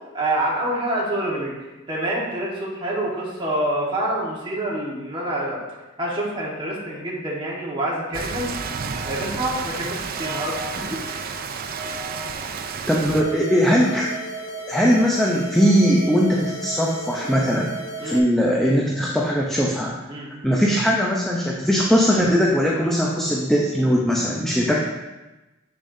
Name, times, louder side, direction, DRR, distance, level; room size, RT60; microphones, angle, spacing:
voice 1, 0.1-5.6 6.0-8.5 9.1-11.2 11.8-12.0 18.0-18.2 20.1-20.3, right 1 dB, 25° right, -5 dB, 1.5 m, -27 dB
Rain, 8.1-13.2, right 5 dB, 45° right, 0.5 m, -30 dB
voice 2, 12.9-14.1 14.7-17.7 18.0-19.9 20.4-24.8, equal, 5° left, -3 dB, 0.7 m, -20 dB
sound 1, 13.1-18.2, right 3 dB, 60° left, 1.7 m, -34 dB
8.3 x 6.7 x 2.7 m, 1.1 s
head